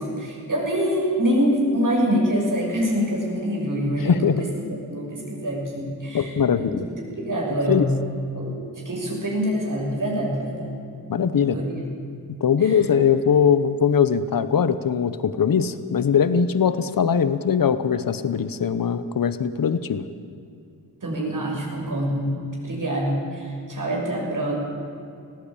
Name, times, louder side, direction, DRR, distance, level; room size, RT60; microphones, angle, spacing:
voice 1, 0.0-7.9 8.3-8.6 8.8-10.7 11.4-11.8 12.6-12.8 21.0-22.3 22.6-24.5, equal, 55° right, -2 dB, 6.7 m, -25 dB
voice 2, 4.0-4.4 6.1-6.9 7.7-7.9 11.1-11.6 12.4-20.0, left 7 dB, 60° left, 13 dB, 1.0 m, -21 dB
19.5 x 15.5 x 8.8 m, 2.5 s
cardioid pair, 60°, 37 cm